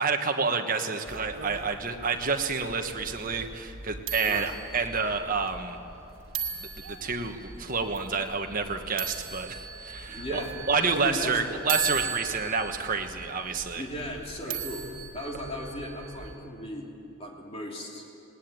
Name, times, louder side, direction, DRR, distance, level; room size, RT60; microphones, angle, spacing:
voice 1, 0.0-5.8 7.0-10.4 10.7-13.8 14.5-14.6, right 4 dB, 40° right, 5 dB, 1.3 m, -29 dB
sound 1, 1.1-16.4, right 6 dB, 65° right, 2.2 m, -38 dB
voice 2, 10.1-10.5 11.0-11.6 13.7-16.9 17.2-18.0, equal, 25° left, -1 dB, 3.0 m, -37 dB
20.0 x 18.5 x 9.2 m, 2.6 s
head